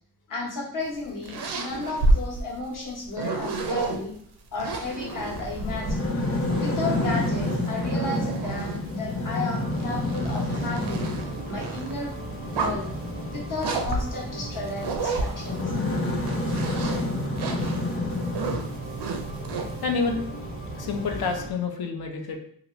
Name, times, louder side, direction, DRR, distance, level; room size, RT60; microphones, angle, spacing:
voice 1, 0.3-4.1 4.5-6.1 6.6-11.1 11.5-12.1 12.5-12.9 13.3-15.7, left 3 dB, 55° left, -2 dB, 1.0 m, -33 dB
sound 1, 0.9-4.0 4.5-9.0 9.6-11.9 12.4-13.0 13.6-15.7 16.1-19.8, right 3 dB, 85° right, 0.6 m, -30 dB
sound 2, 5.0-21.3, left 2 dB, 35° left, 0.7 m, -31 dB
sound 3, 9.6-21.5, right 3 dB, 20° right, 0.4 m, -38 dB
voice 2, 19.8-20.2 20.8-22.4, left 4 dB, 70° left, 4 dB, 0.6 m, -28 dB
2.9 x 2.4 x 3.0 m, 0.63 s
wide cardioid pair, 100°, 38 cm